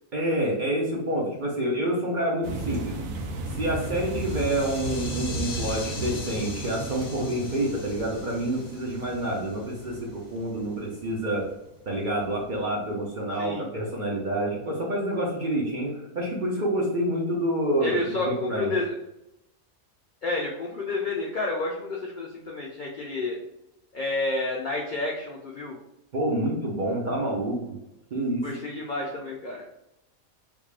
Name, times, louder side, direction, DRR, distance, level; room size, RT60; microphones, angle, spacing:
voice 1, 0.1-3.0 3.6-11.5 11.9-18.7 26.1-27.8 28.1-28.5, right 1 dB, 50° right, -3 dB, 0.6 m, -28 dB
sound 1, 2.4-11.5 12.0-12.2 12.5-12.6, right 1 dB, 75° right, 1.0 m, -35 dB
sound 2, 3.8-9.9, left 4 dB, 60° left, 0.7 m, -41 dB
voice 2, 17.8-19.0 20.2-23.4 23.9-25.8 28.4-29.6, left 2 dB, 85° left, -2 dB, 0.4 m, -30 dB
3.4 x 2.4 x 3.3 m, 0.85 s
omnidirectional pair, 1.5 m